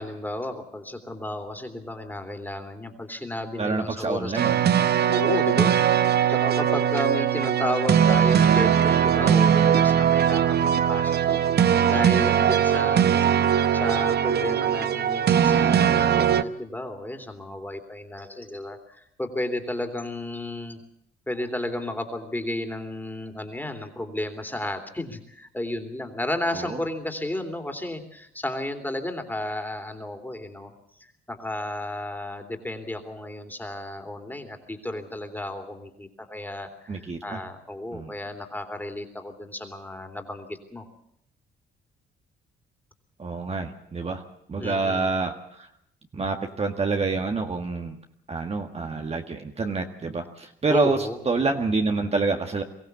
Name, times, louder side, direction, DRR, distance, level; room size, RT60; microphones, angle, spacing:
voice 1, 0.0-4.6 5.1-13.1 13.5-20.8 21.3-30.7 31.0-40.8 44.6-45.1 50.7-51.2, left 1 dB, 10° left, 5 dB, 3.3 m, -33 dB
voice 2, 3.6-4.5 26.5-26.8 36.9-37.4 37.9-38.1 43.2-44.2 44.5-45.7 46.1-48.0 48.3-52.6, right 3 dB, 30° right, 3 dB, 1.7 m, -27 dB
sound 1, 4.4-16.4, right 9 dB, 55° right, 0.9 m, -20 dB
23.5 x 15.5 x 8.2 m, 0.73 s
cardioid pair, 90°, 20 cm